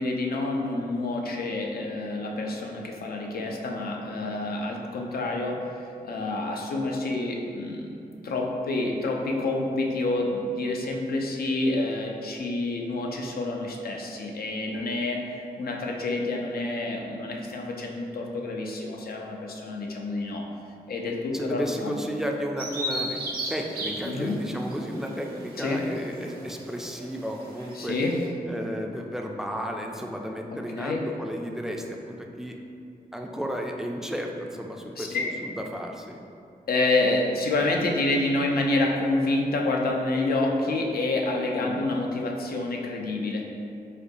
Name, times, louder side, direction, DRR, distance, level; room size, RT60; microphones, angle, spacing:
voice 1, 0.0-5.6 6.0-20.4 20.9-22.0 24.0-24.4 25.6-25.8 27.8-28.1 30.5-31.0 35.0-35.3 36.7-43.4, left 2 dB, 70° left, 0 dB, 0.5 m, -28 dB
voice 2, 21.3-28.0 28.5-30.9 31.2-32.6 33.1-35.2 35.4-36.3 41.6-41.8, equal, 5° right, 1 dB, 0.4 m, -33 dB
Bird vocalization bird call bird song, 22.6-28.3, right 1 dB, 65° right, 0.6 m, -36 dB
4.1 x 2.3 x 2.6 m, 2.5 s
cardioid pair, 45°, 16 cm